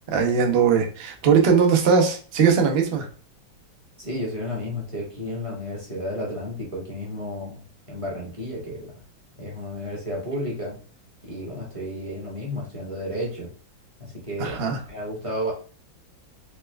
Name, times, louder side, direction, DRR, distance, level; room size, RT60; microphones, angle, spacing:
voice 1, 0.1-3.1 14.4-14.8, right 6 dB, 90° right, 2 dB, 0.5 m, -20 dB
voice 2, 4.0-7.6 7.9-9.0 9.4-10.8 11.2-13.5 14.0-15.5, equal, 20° right, -4 dB, 0.9 m, -32 dB
4.2 x 2.3 x 3.2 m, 0.39 s
omnidirectional pair, 2.1 m